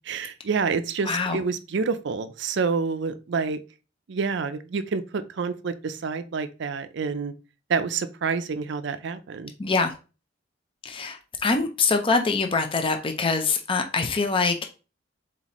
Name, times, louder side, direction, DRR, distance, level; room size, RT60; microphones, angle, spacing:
voice 1, 0.1-3.6 4.1-7.3 7.7-9.5, right 5 dB, 65° right, 0.5 m, -28 dB
voice 2, 1.1-1.4 9.6-9.9 10.8-14.7, left 4 dB, 30° left, 0.5 m, -24 dB
4.1 x 4.0 x 3.0 m
head